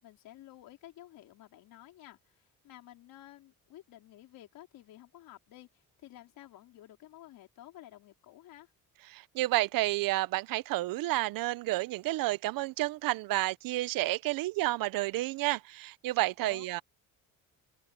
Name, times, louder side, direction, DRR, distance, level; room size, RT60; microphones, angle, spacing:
voice 1, 0.0-8.7 16.4-16.7, left 14 dB, 85° left, 4.2 m, -52 dB
voice 2, 9.1-16.8, right 18 dB, 85° right, 0.7 m, -30 dB
open air
cardioid pair, 175°, 33 cm